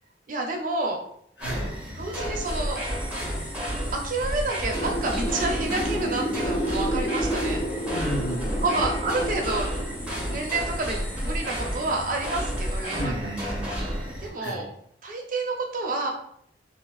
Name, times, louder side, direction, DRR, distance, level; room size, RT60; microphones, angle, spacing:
voice 1, 0.3-1.0 2.0-2.8 3.9-7.6 8.6-9.7 10.3-13.4 14.2-14.7 15.0-16.1, right 2 dB, 50° right, 1 dB, 0.5 m, -29 dB
voice 2, 1.4-1.7 7.9-8.6 12.9-14.0 14.4-14.6, equal, 85° left, -1 dB, 0.8 m, -33 dB
sound 1, 1.4-14.3, equal, 5° right, 0.7 m, -31 dB
sound 2, 2.4-13.0, left 1 dB, 45° left, 1.1 m, -44 dB
sound 3, 4.7-10.9, right 1 dB, 30° left, 0.3 m, -31 dB
2.6 x 2.1 x 3.1 m, 0.69 s
head